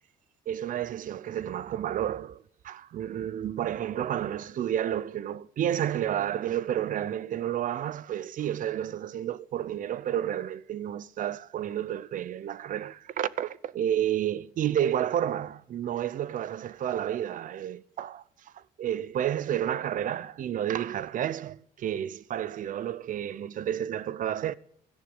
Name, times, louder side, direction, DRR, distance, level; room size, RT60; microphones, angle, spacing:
voice 1, 0.5-24.5, right 10 dB, 50° right, 0.6 m, -31 dB
16.5 x 12.0 x 5.2 m
cardioid pair, 110°, 17 cm